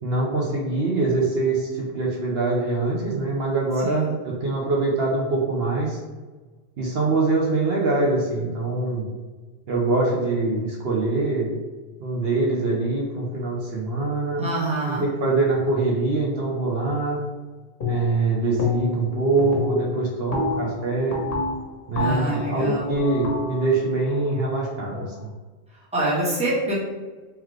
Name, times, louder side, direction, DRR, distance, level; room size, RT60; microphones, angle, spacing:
voice 1, 0.0-6.0 6.8-9.1 9.7-11.5 12.0-14.4 15.0-17.2 17.9-21.2 21.9-25.3, right 3 dB, 65° right, -3 dB, 1.0 m, -24 dB
voice 2, 3.8-4.2 14.4-15.0 22.0-22.9 25.9-26.7, right 2 dB, 5° right, -7 dB, 1.1 m, -25 dB
sound 1, 17.8-18.3 18.6-19.1 19.4-25.2, left 4 dB, 60° left, 1.0 m, -29 dB
3.8 x 3.1 x 3.1 m, 1.3 s
omnidirectional pair, 1.1 m